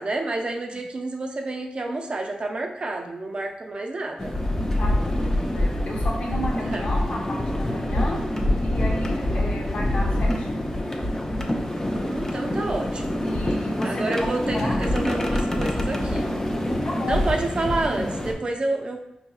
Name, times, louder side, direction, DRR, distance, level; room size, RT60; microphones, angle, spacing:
voice 1, 0.0-4.3 6.7-6.8 9.3-9.9 12.0-13.2 13.8-16.3 17.0-19.0, right 2 dB, 45° right, 2 dB, 0.5 m, -29 dB
sound 1, 4.2-18.3, left 1 dB, 20° left, 0.5 m, -25 dB
voice 2, 4.8-8.2 8.6-10.8 13.2-14.8 16.8-17.2, left 1 dB, 60° left, -2 dB, 0.8 m, -33 dB
4.2 x 2.8 x 2.3 m, 0.83 s
cardioid pair, 70°, 2 cm